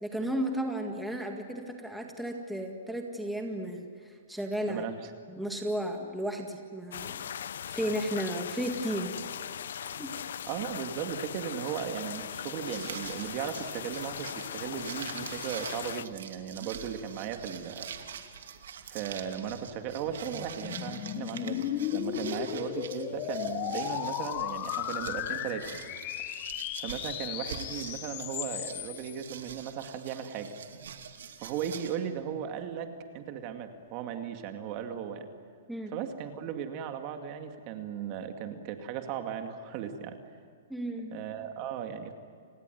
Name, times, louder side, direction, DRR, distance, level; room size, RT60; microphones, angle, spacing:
voice 1, 0.0-4.8 5.3-7.2 7.7-9.1 10.0-10.2 35.7-35.9 40.7-41.1, right 1 dB, ahead, 2 dB, 1.9 m, -34 dB
sound 1, 6.9-16.1, left 9 dB, 70° left, 0.6 m, -39 dB
voice 2, 10.5-17.9 18.8-25.7 26.8-30.5 31.4-35.3 35.9-40.2 41.1-42.1, right 8 dB, 35° right, 6 dB, 2.3 m, -37 dB
sound 2, 12.5-31.9, right 7 dB, 75° right, 2.7 m, -45 dB
sound 3, 19.4-29.1, left 14 dB, 30° left, 0.9 m, -36 dB
30.0 x 19.5 x 9.4 m, 2.2 s
hypercardioid pair, 155°, 0 cm